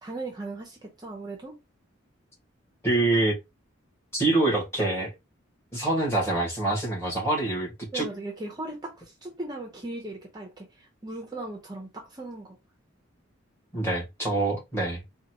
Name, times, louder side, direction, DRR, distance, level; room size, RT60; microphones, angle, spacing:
voice 1, 0.0-1.6 7.9-12.6, right 2 dB, 20° right, 0.5 m, -38 dB
voice 2, 2.8-3.3 4.1-5.1 5.7-8.1 13.7-15.0, right 2 dB, 15° left, 1.4 m, -25 dB
3.9 x 2.2 x 2.9 m
head